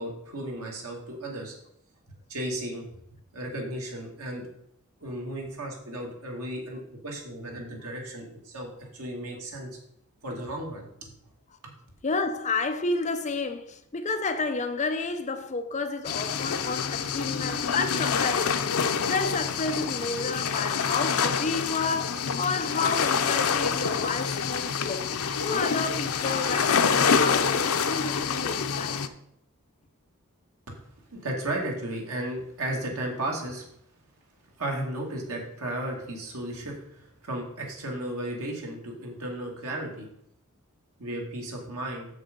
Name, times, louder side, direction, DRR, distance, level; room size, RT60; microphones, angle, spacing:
voice 1, 0.0-1.5 2.3-2.8 3.3-4.4 5.0-9.7 10.2-11.1 11.6-11.7 30.7-30.8 31.1-33.7 34.6-40.1 41.0-42.1, right 1 dB, 80° right, 2.4 m, -34 dB
voice 2, 12.0-18.6 19.1-25.1 25.4-29.0, left 3 dB, 35° left, 0.6 m, -31 dB
sound 1, 16.0-29.1, left 6 dB, 80° left, 0.6 m, -26 dB
7.2 x 6.4 x 5.3 m
head